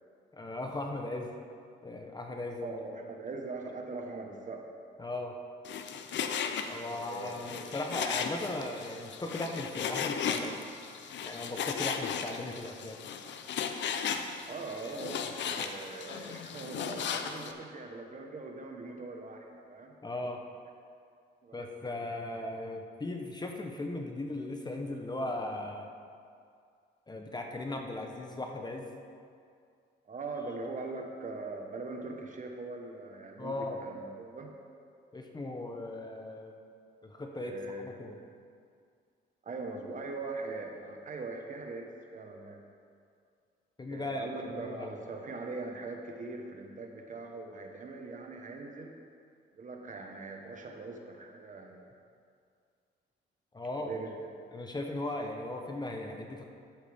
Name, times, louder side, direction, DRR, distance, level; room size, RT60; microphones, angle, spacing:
voice 1, 0.3-1.3 1.8-2.8 5.0-5.3 6.7-10.6 11.2-13.0 20.0-20.4 21.5-25.9 27.1-28.8 33.4-33.8 35.1-36.5 37.0-37.5 37.8-38.2 43.8-45.0 53.5-53.9 54.5-56.4, left 2 dB, 20° left, 2 dB, 0.9 m, -37 dB
voice 2, 2.6-4.7 6.8-7.7 14.5-19.9 21.4-22.2 30.0-34.5 37.3-37.9 39.4-42.6 43.9-49.0 49.5-51.9 53.8-54.2, right 3 dB, 40° right, 2 dB, 1.3 m, -41 dB
Frying (food), 5.6-17.5, left 7 dB, 65° left, 0.7 m, -36 dB
11.5 x 8.3 x 3.6 m, 2.3 s
cardioid pair, 90°, 20 cm